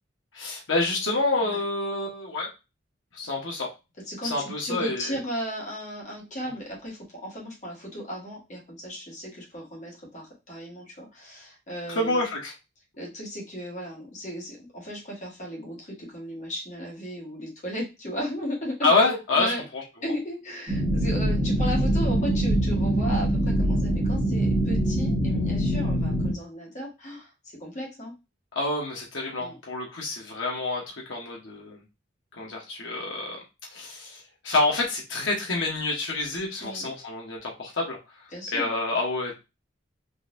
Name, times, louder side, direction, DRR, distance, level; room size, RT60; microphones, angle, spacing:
voice 1, 0.3-2.5 3.1-3.7 4.2-5.2 11.9-12.5 18.8-19.5 28.5-31.8 32.4-33.4 33.7-38.0 38.5-39.3, left 2 dB, 85° left, -2 dB, 0.9 m, -27 dB
voice 2, 4.0-12.2 13.0-19.6 20.0-27.3 27.6-28.1 29.4-29.6 36.6-36.9 38.3-38.7, equal, 40° left, -2 dB, 1.4 m, -35 dB
sound 1, 20.7-26.3, right 1 dB, 25° right, 1.0 m, -24 dB
3.8 x 2.5 x 2.5 m, 0.26 s
head